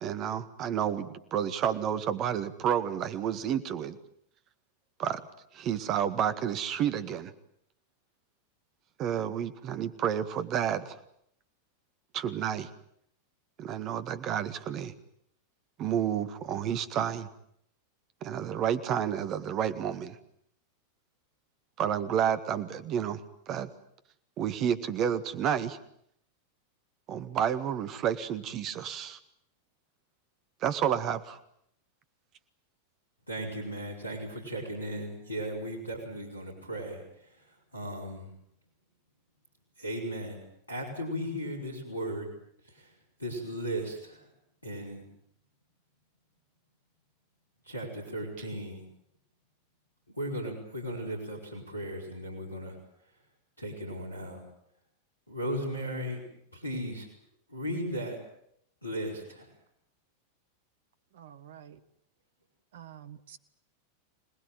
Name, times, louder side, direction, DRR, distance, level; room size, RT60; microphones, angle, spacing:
voice 1, 0.0-4.0 5.0-5.2 5.5-7.3 9.0-11.0 12.1-12.7 13.6-14.9 15.8-17.3 18.2-20.2 21.8-23.7 24.4-25.8 27.1-29.2 30.6-31.4, right 9 dB, 35° right, 12 dB, 1.8 m, -30 dB
voice 2, 33.3-38.3 39.8-40.4 40.7-42.3 42.6-42.9 43.2-44.3 44.6-45.1 47.7-48.8 50.1-52.8 53.6-54.4 55.3-56.2 56.5-57.1 57.5-58.2 58.8-59.5, equal, 85° left, 1 dB, 5.1 m, -36 dB
voice 3, 61.1-61.8 62.7-63.4, right 10 dB, 60° right, 13 dB, 1.6 m, -48 dB
26.0 x 19.5 x 9.2 m, 0.72 s
figure-of-eight pair, 90°, 0 cm